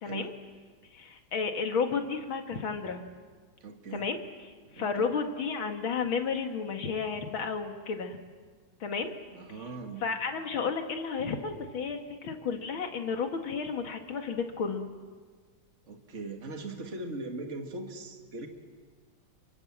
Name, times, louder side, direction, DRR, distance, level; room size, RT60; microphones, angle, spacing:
voice 1, 0.0-0.3 0.9-3.0 3.9-4.2 4.7-8.2 8.8-9.1 9.6-9.7 10.0-14.9, left 5 dB, 75° left, 5 dB, 2.7 m, -32 dB
voice 2, 3.6-4.1 4.7-5.1 9.3-10.0 15.9-18.5, right 3 dB, 35° right, 4 dB, 2.3 m, -40 dB
30.0 x 24.0 x 7.5 m, 1.5 s
omnidirectional pair, 2.2 m